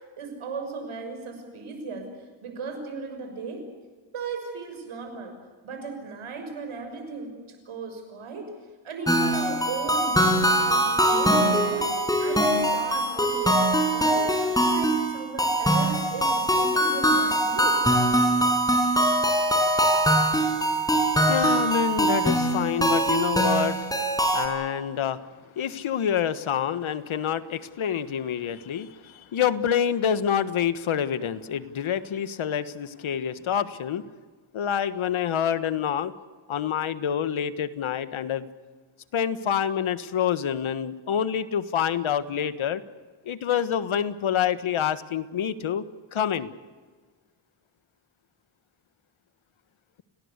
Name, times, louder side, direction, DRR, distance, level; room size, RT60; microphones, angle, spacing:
voice 1, 0.2-2.1 2.4-3.7 4.1-5.3 5.6-8.5 8.8-11.9 12.2-13.6 13.9-17.8, right 4 dB, 85° right, 5 dB, 6.4 m, -36 dB
sound 1, 9.1-24.5, right 1 dB, 5° left, 5.7 m, -22 dB
voice 2, 21.3-23.8 24.3-25.2 25.6-34.0 34.5-36.1 36.5-38.5 39.1-42.8 43.2-45.8 46.1-46.5, left 8 dB, 75° left, 13 dB, 1.5 m, -27 dB
29.5 x 18.5 x 8.3 m, 1.4 s
cardioid pair, 70°, 48 cm